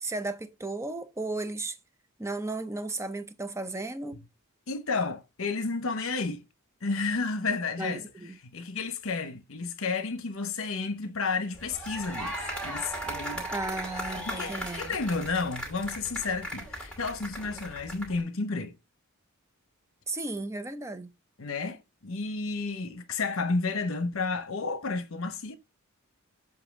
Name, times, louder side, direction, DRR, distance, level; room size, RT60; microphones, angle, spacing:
voice 1, 0.0-1.8 2.2-4.2 7.8-8.4 13.5-15.0 20.1-21.1, right 2 dB, 15° right, 0.5 m, -35 dB
voice 2, 4.7-6.4 6.8-8.0 8.4-13.5 14.2-18.8 21.4-25.6, left 4 dB, 65° left, 1.0 m, -31 dB
sound 1, 11.5-18.2, right 1 dB, 5° left, 2.5 m, -37 dB
7.7 x 2.7 x 6.0 m
head